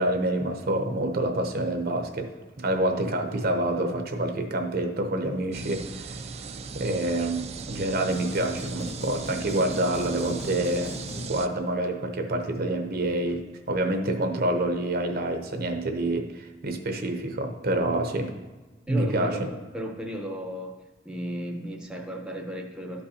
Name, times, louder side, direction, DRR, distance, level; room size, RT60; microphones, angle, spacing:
voice 1, 0.0-2.3 2.6-6.2 6.7-18.3 18.9-19.4, right 1 dB, 55° right, 6 dB, 0.7 m, -27 dB
sound 1, 5.5-11.5, right 4 dB, 35° right, 0.3 m, -38 dB
sound 2, 8.1-11.8, left 2 dB, 35° left, 0.4 m, -41 dB
voice 2, 18.9-20.8 21.0-23.0, equal, 5° right, 2 dB, 0.7 m, -35 dB
12.0 x 5.3 x 2.8 m, 1.2 s
head